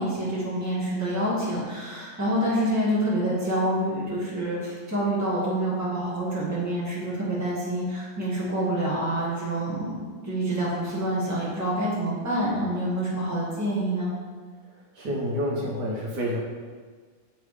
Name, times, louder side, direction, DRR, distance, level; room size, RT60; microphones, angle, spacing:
voice 1, 0.0-9.9 10.2-14.1, right 1 dB, 10° right, -7 dB, 1.7 m, -27 dB
voice 2, 15.0-16.4, equal, 70° right, -3 dB, 1.7 m, -28 dB
7.7 x 3.9 x 4.9 m, 1.5 s
omnidirectional pair, 1.9 m